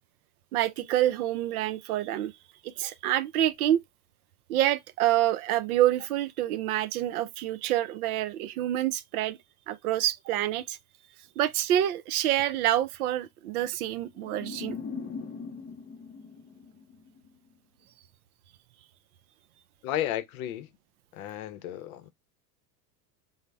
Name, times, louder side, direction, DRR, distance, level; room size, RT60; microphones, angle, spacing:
voice 1, 0.5-2.3 2.6-3.8 4.5-9.4 9.7-10.8 11.4-14.8, right 13 dB, 65° right, 0.5 m, -27 dB
sound 1, 14.2-17.3, left 5 dB, 20° left, 0.5 m, -40 dB
voice 2, 19.8-20.7 21.1-22.1, left 12 dB, 60° left, 0.7 m, -33 dB
3.9 x 2.1 x 3.3 m
hypercardioid pair, 85°, 48 cm